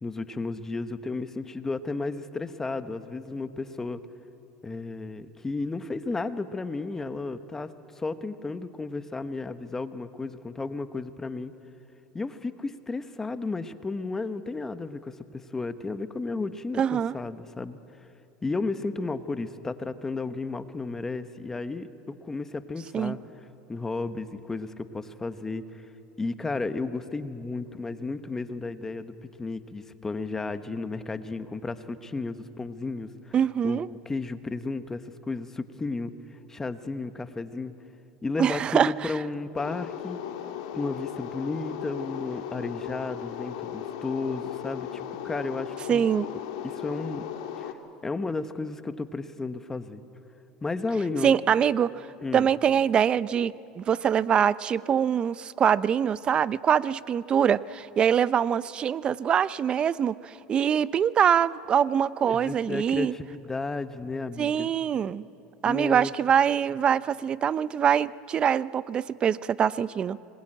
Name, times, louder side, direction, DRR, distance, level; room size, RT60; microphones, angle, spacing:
voice 1, 0.0-4.0 4.6-11.5 12.1-17.8 18.4-21.9 22.2-23.2 23.7-25.9 26.2-33.4 33.6-36.1 36.5-37.7 38.2-40.2 40.7-46.1 46.3-47.2 47.6-47.8 48.0-50.0 50.6-51.3 52.2-52.5 62.3-64.7 65.6-66.1, left 3 dB, 15° left, 11 dB, 1.1 m, -33 dB
voice 2, 16.8-17.2 22.9-23.2 33.3-33.9 38.4-39.1 45.9-46.3 51.2-51.9 52.3-63.1 64.4-65.3 65.6-70.2, right 8 dB, 30° right, 18 dB, 0.5 m, -24 dB
sound 1, 39.6-47.7, left 10 dB, 80° left, 1.9 m, -36 dB
25.5 x 21.0 x 8.9 m, 2.7 s
supercardioid pair, 120°, 3 cm